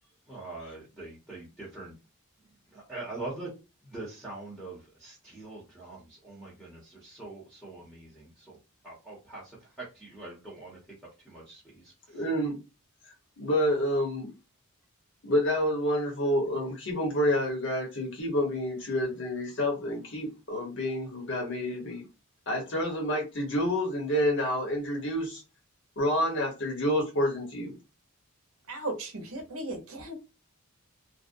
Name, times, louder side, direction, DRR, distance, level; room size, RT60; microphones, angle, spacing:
voice 1, 0.3-2.0 2.7-3.5 3.8-8.6 8.8-10.8 11.2-12.2, right 2 dB, ahead, 0.8 m, -43 dB
voice 2, 12.1-12.6 13.4-14.3 15.2-22.0 22.5-25.4 26.0-27.7, equal, 55° left, 1.0 m, -28 dB
voice 3, 28.7-30.2, right 2 dB, 70° right, 0.7 m, -36 dB
2.5 x 2.1 x 2.5 m
head